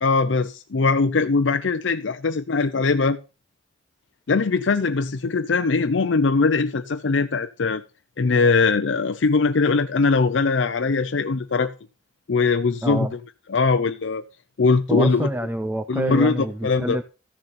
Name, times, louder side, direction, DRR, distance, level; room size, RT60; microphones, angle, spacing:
voice 1, 0.0-3.2 4.3-7.8 8.2-11.7 12.3-13.1 13.5-14.2 14.6-15.3 15.9-17.0, left 4 dB, 90° left, 0.6 m, -21 dB
voice 2, 12.8-13.1 14.9-17.0, right 1 dB, 10° right, 0.5 m, -26 dB
14.5 x 6.6 x 4.1 m
head